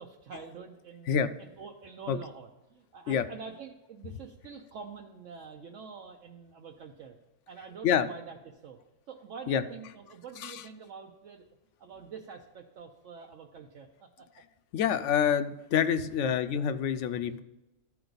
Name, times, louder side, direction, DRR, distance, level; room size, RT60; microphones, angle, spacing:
voice 1, 0.0-1.1 1.4-7.2 7.5-8.8 9.1-11.4 11.8-14.3 16.3-16.4 17.2-17.3, right 6 dB, 70° right, 1 dB, 1.1 m, -46 dB
voice 2, 14.7-17.4, left 8 dB, 70° left, 11 dB, 0.8 m, -27 dB
13.5 x 4.6 x 3.9 m, 0.98 s
omnidirectional pair, 1.4 m